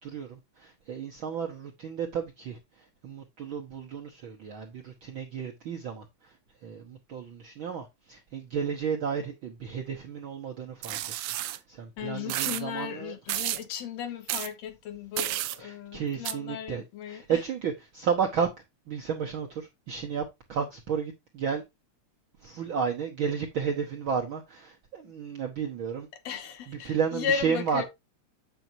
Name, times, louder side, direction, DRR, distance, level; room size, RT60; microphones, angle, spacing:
voice 1, 0.0-2.6 3.0-6.3 6.6-11.0 11.4-13.1 15.6-16.8 17.1-18.5 18.9-20.2 20.5-21.6 22.4-26.1 26.7-27.8, right 6 dB, 55° right, 1.6 m, -32 dB
sound 1, 10.8-11.6 12.3-12.6 13.3-13.6 14.3-14.5 15.2-15.6 16.3-16.4, right 14 dB, 85° right, 1.3 m, -31 dB
voice 2, 12.0-17.4 26.2-27.8, left 7 dB, 70° left, 2.3 m, -35 dB
8.4 x 7.7 x 2.7 m
omnidirectional pair, 3.3 m